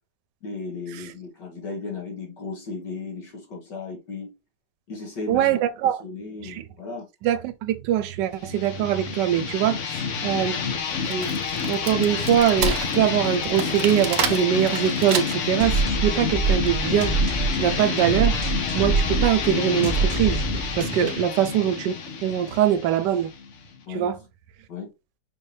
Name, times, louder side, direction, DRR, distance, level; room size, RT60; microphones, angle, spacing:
voice 1, 0.4-4.3 4.9-7.1 21.0-21.2 23.9-24.1 24.7-24.9, left 4 dB, 80° left, 2.0 m, -35 dB
voice 2, 5.3-6.0 6.4-6.6 7.2-10.6 11.1-11.3 11.7-18.4 18.7-20.5 20.8-21.9 22.2-23.3 23.9-24.2, right 10 dB, 85° right, 1.2 m, -23 dB
sound 1, 8.4-23.8, left 6 dB, 55° left, 0.9 m, -29 dB
Wood, 10.9-15.6, right 6 dB, 60° right, 0.6 m, -29 dB
sound 2, 15.6-21.2, right 4 dB, 30° right, 0.9 m, -26 dB
5.4 x 2.7 x 3.2 m
omnidirectional pair, 1.8 m